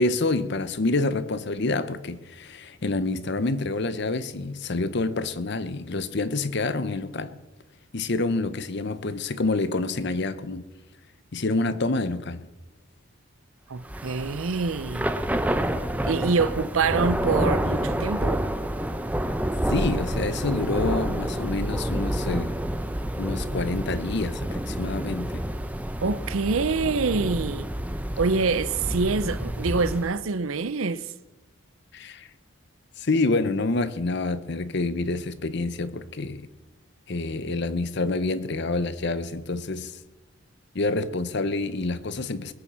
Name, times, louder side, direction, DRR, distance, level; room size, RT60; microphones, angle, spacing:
voice 1, 0.0-7.4 7.9-10.7 11.3-12.5 19.7-22.6 23.2-25.4 31.9-32.3 33.0-36.5 37.1-40.0 40.7-42.5, left 2 dB, 55° left, 0.7 m, -27 dB
voice 2, 13.7-15.0 16.0-18.4 26.0-27.7 28.2-31.1, right 4 dB, 75° right, 0.6 m, -25 dB
Thunder / Rain, 13.8-30.1, right 1 dB, 5° right, 0.7 m, -28 dB
21.0 x 7.1 x 7.4 m
head